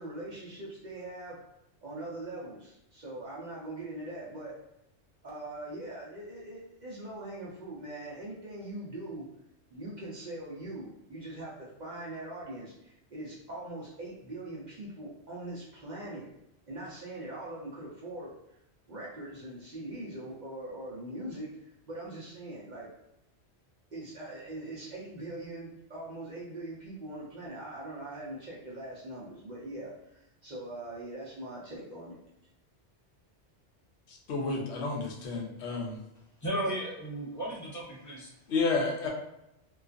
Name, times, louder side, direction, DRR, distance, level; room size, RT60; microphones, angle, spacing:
voice 1, 0.0-1.4 1.8-4.6 5.2-9.3 9.7-16.3 16.7-18.3 18.9-22.9 23.9-32.2, right 1 dB, 50° right, -6 dB, 0.6 m, -42 dB
voice 2, 34.1-36.0 38.5-39.1, left 3 dB, 75° left, 0 dB, 0.8 m, -31 dB
voice 3, 36.4-38.3, right 1 dB, 20° left, -6 dB, 0.6 m, -34 dB
2.3 x 2.3 x 2.4 m, 0.85 s
omnidirectional pair, 1.2 m